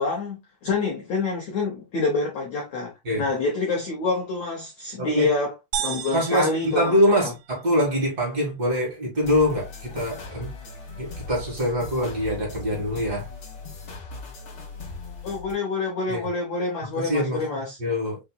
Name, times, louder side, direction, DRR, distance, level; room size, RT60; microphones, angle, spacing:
voice 1, 0.0-2.9 3.2-5.5 5.8-7.3 15.2-17.8, left 3 dB, 85° left, 1.5 m, -27 dB
voice 2, 5.0-5.3 6.1-10.5 11.0-13.3 16.1-16.3 16.9-18.2, equal, 40° right, 1.3 m, -24 dB
sound 1, 5.7-7.7, right 9 dB, 85° right, 2.9 m, -33 dB
sound 2, 9.2-15.5, left 3 dB, 55° left, 1.6 m, -38 dB
6.5 x 2.9 x 2.3 m
omnidirectional pair, 4.8 m